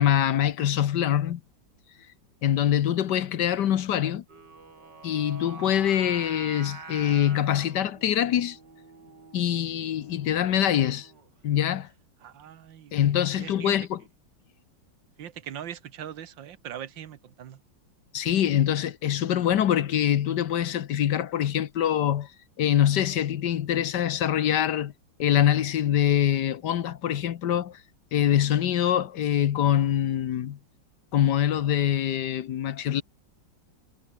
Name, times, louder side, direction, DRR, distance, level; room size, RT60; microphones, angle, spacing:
voice 1, 0.0-1.4 2.4-4.2 5.0-8.6 9.3-11.1 11.4-11.9 12.9-14.0 18.1-22.3 22.6-24.9 25.2-27.8 28.1-30.6 31.1-33.0, left 10 dB, 65° left, 1.5 m, -24 dB
Singing, 4.3-11.4, right 4 dB, 65° right, 4.4 m, -46 dB
voice 2, 12.2-13.0 13.3-13.7 15.2-17.6, right 10 dB, 80° right, 1.9 m, -40 dB
omnidirectional pair, 2.0 m